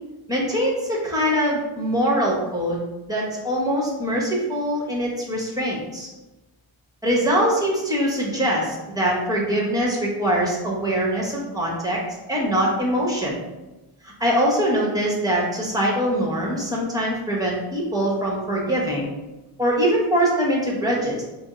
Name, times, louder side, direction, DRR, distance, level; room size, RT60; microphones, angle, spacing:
voice 1, 0.3-2.8 3.1-6.1 7.0-12.0 12.3-13.4 14.2-19.1 19.6-21.2, equal, 10° right, -4 dB, 1.0 m, -23 dB
2.6 x 2.0 x 3.6 m, 1.1 s
supercardioid pair, 60°, 49 cm